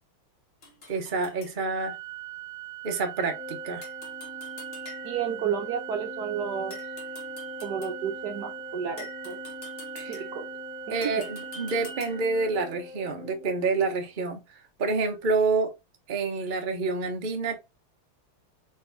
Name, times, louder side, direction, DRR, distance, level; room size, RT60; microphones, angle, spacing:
sound 1, 0.6-1.6 3.8-5.3 6.7-8.1 9.0-10.5 11.0-12.4, left 3 dB, 40° left, 0.9 m, -47 dB
voice 1, 0.9-1.9 2.8-3.8 9.9-10.2 10.9-15.7 16.1-17.6, right 4 dB, 45° right, 0.6 m, -28 dB
Organ, 1.8-12.8, right 16 dB, 85° right, 1.5 m, -41 dB
Organ 2, 3.2-13.9, left 4 dB, 90° left, 0.6 m, -43 dB
voice 2, 5.0-6.8 7.6-9.4 10.1-10.5 10.9-11.2, right 7 dB, 65° right, 1.1 m, -32 dB
4.4 x 3.7 x 2.6 m
omnidirectional pair, 2.4 m